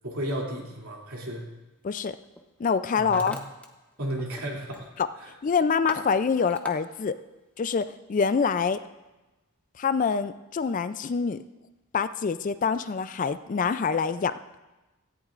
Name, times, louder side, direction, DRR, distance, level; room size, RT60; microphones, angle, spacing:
voice 1, 0.0-1.5 3.0-3.4 4.0-5.3, right 1 dB, 70° right, -2 dB, 2.7 m, -34 dB
Hammer, 1.1-1.4 2.1-2.4 2.7-3.7 3.9-4.5 4.7-5.1 5.5-6.8, left 1 dB, 5° left, 0.7 m, -41 dB
voice 2, 1.8-2.2 2.6-3.4 5.0-5.1 5.4-7.2 7.6-8.8 9.8-11.4 11.9-14.4, left 5 dB, 35° left, 12 dB, 0.3 m, -25 dB
17.0 x 14.0 x 2.5 m, 1.1 s
head